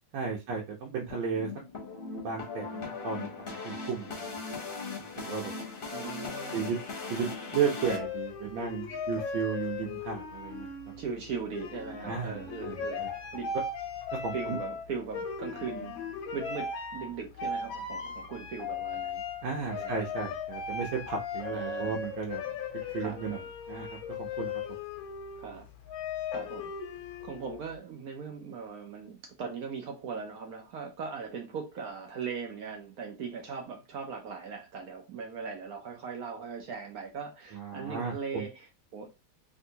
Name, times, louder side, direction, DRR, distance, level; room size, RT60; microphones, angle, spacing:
voice 1, 0.1-1.5 2.2-4.4 5.2-5.5 6.5-6.8 7.1-10.7 12.1-13.1 14.2-14.6 19.4-22.4 22.9-23.4 23.7-24.5 37.5-38.5, right 6 dB, 85° right, 1.5 m, -34 dB
sound 1, 1.1-8.0, left 4 dB, 40° left, 0.8 m, -39 dB
voice 2, 5.9-6.8 7.2-7.3 11.0-13.5 14.3-15.9 16.3-19.2 19.7-20.0 21.5-22.0 23.0-23.5 25.4-25.7 26.3-26.7 27.2-39.1, right 6 dB, 65° right, 1.0 m, -39 dB
sound 2, 7.8-27.7, left 5 dB, 90° left, 1.4 m, -37 dB
3.5 x 2.7 x 2.7 m
omnidirectional pair, 2.1 m